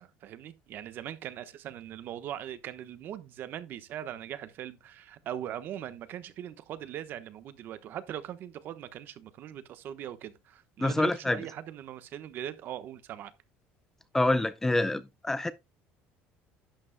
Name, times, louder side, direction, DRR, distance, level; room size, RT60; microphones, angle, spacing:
voice 1, 0.0-13.3, right 11 dB, 50° right, 1.1 m, -40 dB
voice 2, 10.8-11.4 14.1-15.5, left 2 dB, 10° left, 0.4 m, -26 dB
11.5 x 8.5 x 2.2 m
cardioid pair, 150°, 5 cm